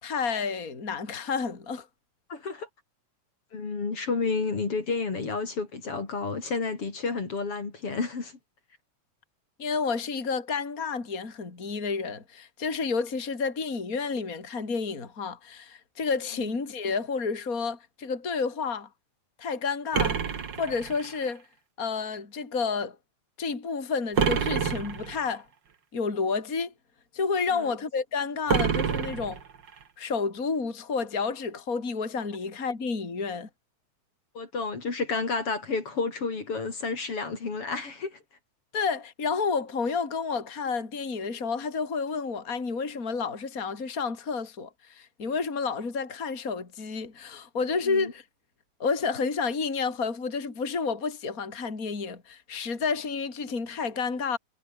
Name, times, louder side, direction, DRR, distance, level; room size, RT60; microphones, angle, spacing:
voice 1, 0.0-1.9 9.6-18.9 19.4-20.2 20.6-21.4 21.8-23.0 23.4-25.5 25.9-26.7 27.1-29.4 30.0-33.5 38.7-48.2 48.8-54.4, left 5 dB, 30° left, 3.7 m, -30 dB
voice 2, 2.3-2.7 3.5-8.4 27.5-27.7 34.3-38.2 47.8-48.1, left 4 dB, 50° left, 4.4 m, -31 dB
sound 1, 19.9-21.3 24.2-25.3 28.5-29.8, right 6 dB, 40° right, 2.3 m, -28 dB
omnidirectional pair, 3.4 m